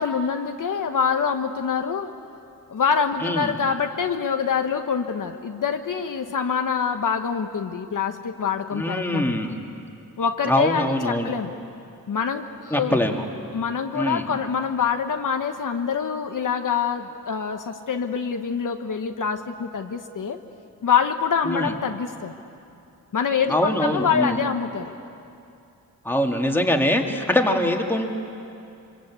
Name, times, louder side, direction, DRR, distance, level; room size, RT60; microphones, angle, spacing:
voice 1, 0.0-2.1 2.7-9.4 10.2-11.5 12.1-12.9 13.5-20.4 20.8-22.3 23.1-24.9, left 6 dB, 60° left, 5 dB, 1.1 m, -25 dB
voice 2, 3.2-3.5 8.7-9.6 10.5-11.3 12.7-13.3 13.9-14.3 21.4-21.7 23.5-24.4 26.0-28.1, left 1 dB, 5° left, 2 dB, 2.1 m, -23 dB
24.5 x 24.5 x 8.4 m, 2.6 s
wide cardioid pair, 110°, 36 cm